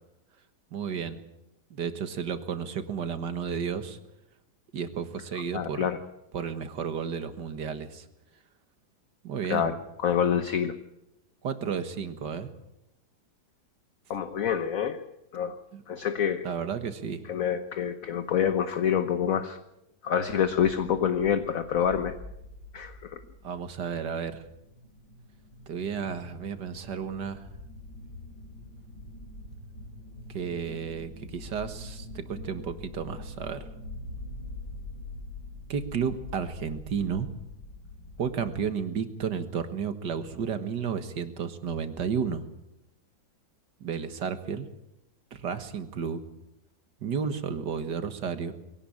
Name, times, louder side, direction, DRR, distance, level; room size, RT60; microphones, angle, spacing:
voice 1, 0.7-1.2 1.7-4.0 4.7-5.9 6.3-8.1 9.2-9.7 11.4-12.5 15.7-15.8 16.4-17.2 23.2-24.4 25.7-27.4 30.3-33.6 35.7-37.3 38.2-42.4 43.8-44.7 45.3-46.2 47.0-48.5, right 7 dB, 60° right, 10 dB, 2.1 m, -32 dB
voice 2, 5.5-6.0 9.5-10.8 14.1-15.0 15.3-15.6 15.9-16.5 17.3-19.6 20.0-22.1 22.7-23.2, left 8 dB, 50° left, 10 dB, 1.2 m, -27 dB
sound 1, 20.4-38.5, left 2 dB, 70° left, 7.5 m, -44 dB
22.0 x 17.5 x 8.7 m, 0.87 s
omnidirectional pair, 2.1 m